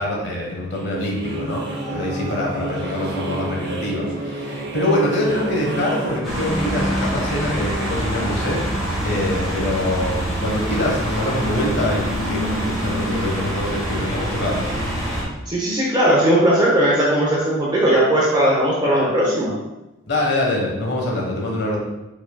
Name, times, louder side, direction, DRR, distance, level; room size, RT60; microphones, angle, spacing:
voice 1, 0.0-8.6 9.0-14.6 20.1-21.8, left 1 dB, 60° left, -1 dB, 1.2 m, -24 dB
sound 1, 0.7-6.2, right 1 dB, 55° right, 0.8 m, -29 dB
sound 2, 6.2-15.2, equal, ahead, 1.5 m, -25 dB
voice 2, 15.5-19.5, right 1 dB, 20° right, -5 dB, 0.8 m, -18 dB
4.8 x 4.6 x 2.3 m, 1.0 s
head